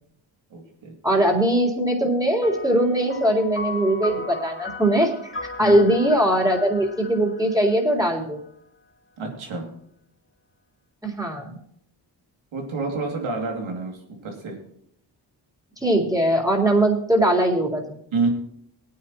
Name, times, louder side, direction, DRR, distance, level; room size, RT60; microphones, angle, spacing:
voice 1, 0.5-0.9 5.6-5.9 9.2-9.8 12.5-14.6 18.1-18.3, right 3 dB, 90° right, 1 dB, 2.7 m, -28 dB
voice 2, 1.0-5.3 5.6-8.4 11.0-11.6 15.8-18.0, right 1 dB, 10° right, -1 dB, 3.8 m, -21 dB
sound 1, 2.4-8.2, left 3 dB, 25° left, 2.4 m, -36 dB
19.0 x 9.4 x 3.0 m, 0.70 s
cardioid pair, 60°, 46 cm